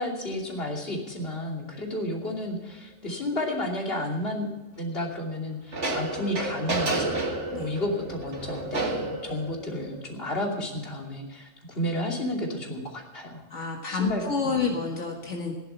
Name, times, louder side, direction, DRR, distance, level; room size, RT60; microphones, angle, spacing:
voice 1, 0.0-4.5 4.8-7.2 7.6-13.4 13.9-14.8, left 1 dB, 55° left, 0 dB, 3.0 m, -32 dB
sound 1, 1.2-1.3 5.7-10.0, right 2 dB, 75° right, 2.2 m, -31 dB
voice 2, 13.5-15.5, left 4 dB, 85° left, 0 dB, 2.2 m, -29 dB
15.5 x 11.0 x 5.8 m, 1.2 s
omnidirectional pair, 1.2 m